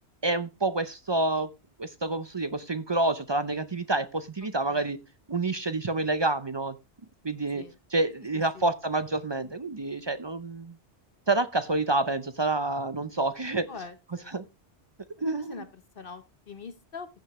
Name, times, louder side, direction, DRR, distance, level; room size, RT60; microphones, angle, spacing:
voice 1, 0.2-1.5 1.8-5.0 5.3-6.8 7.2-7.6 7.9-10.8 11.3-13.7 14.3-14.4 15.2-15.6, right 2 dB, 35° right, 12 dB, 0.5 m, -28 dB
voice 2, 13.7-14.4 15.5-15.7 15.9-17.1, left 5 dB, 55° left, 10 dB, 1.1 m, -43 dB
15.0 x 6.5 x 3.1 m, 0.24 s
omnidirectional pair, 1.1 m